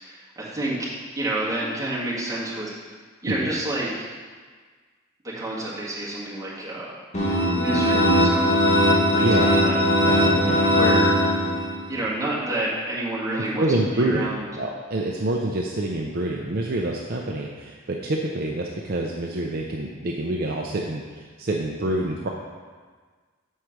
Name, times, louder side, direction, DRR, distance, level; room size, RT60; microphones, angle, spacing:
voice 1, 0.0-2.7 3.2-4.1 5.2-6.9 7.6-9.8 10.8-11.1 11.9-14.5, right 1 dB, 15° right, -8 dB, 1.7 m, -29 dB
sound 1, 7.1-11.9, equal, 30° left, 1.3 m, -19 dB
voice 2, 9.0-9.6 10.0-10.7 13.3-14.3 14.5-22.3, right 1 dB, 45° right, -1 dB, 0.5 m, -27 dB
6.5 x 4.8 x 5.9 m, 1.5 s
head